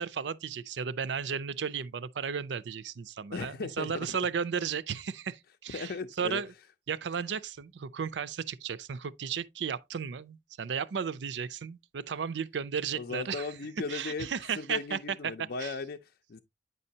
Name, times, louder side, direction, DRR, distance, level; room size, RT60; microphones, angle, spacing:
voice 1, 0.0-6.5 6.9-13.5 13.9-15.0 15.2-15.7, right 6 dB, 80° right, 0.5 m, -34 dB
voice 2, 3.3-4.2 5.7-6.4 12.9-14.3 14.6-16.4, left 4 dB, 60° left, 0.5 m, -37 dB
9.0 x 5.4 x 2.8 m
head